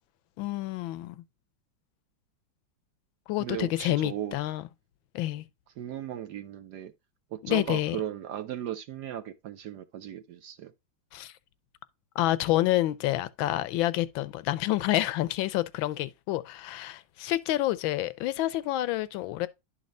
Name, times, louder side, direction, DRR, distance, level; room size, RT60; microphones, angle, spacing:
voice 1, 0.4-1.2 3.3-4.7 5.1-5.5 7.4-8.0 11.1-11.3 12.2-19.5, left 15 dB, 80° left, 1.3 m, -28 dB
voice 2, 3.4-4.4 5.8-6.9 7.3-10.7, right 11 dB, 70° right, 1.0 m, -36 dB
11.5 x 4.2 x 2.5 m
omnidirectional pair, 2.2 m